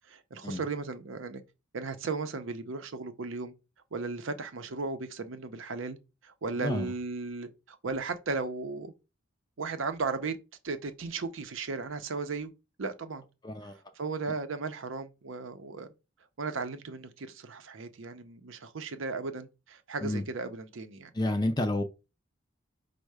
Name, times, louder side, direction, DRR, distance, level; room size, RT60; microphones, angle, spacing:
voice 1, 0.1-1.4 1.7-3.5 3.9-6.0 6.2-8.9 9.6-10.4 10.6-12.5 12.8-13.2 13.6-15.9 16.4-21.1, right 4 dB, 70° right, 0.6 m, -36 dB
voice 2, 6.6-6.9 13.4-13.8 20.0-20.2 21.1-21.8, left 1 dB, 20° left, 0.4 m, -30 dB
5.4 x 2.1 x 4.7 m
head